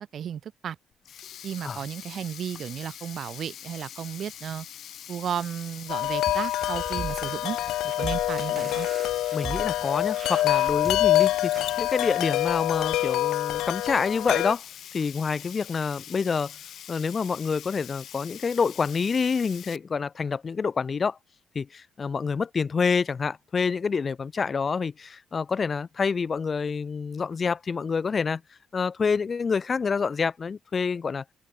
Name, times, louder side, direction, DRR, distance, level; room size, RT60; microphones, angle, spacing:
voice 1, 0.1-0.8 1.4-4.7 5.1-7.6 8.0-8.9, right 9 dB, 60° right, 6.3 m, -34 dB
Sink (filling or washing), 0.9-19.8, left 10 dB, 70° left, 2.8 m, -44 dB
Wind chime, 5.9-14.5, left 14 dB, 90° left, 0.6 m, -26 dB
sound 1, 6.3-11.8, right 6 dB, 45° right, 2.7 m, -40 dB
voice 2, 9.3-14.6 14.9-16.5 16.9-21.2 21.5-28.4 28.7-31.2, left 5 dB, 40° left, 0.9 m, -27 dB
cardioid pair, 90°, 0 cm